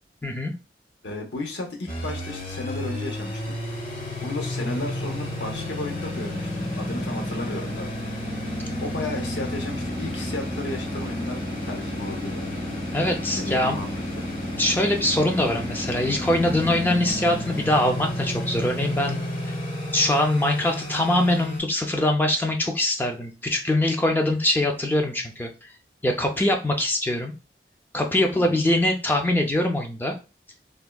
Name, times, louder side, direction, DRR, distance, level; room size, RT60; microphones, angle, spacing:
voice 1, 0.2-0.5 12.9-13.8 14.6-19.5 19.9-25.7 26.0-27.3 27.9-30.2, left 1 dB, 10° left, 3 dB, 0.3 m, -23 dB
voice 2, 1.0-3.6 4.2-7.9 8.8-12.6 13.3-14.2 28.4-28.6, left 2 dB, 80° left, 2 dB, 0.7 m, -34 dB
sound 1, 1.9-21.6, left 1 dB, 50° left, 1.0 m, -31 dB
3.4 x 2.1 x 2.2 m, 0.31 s
head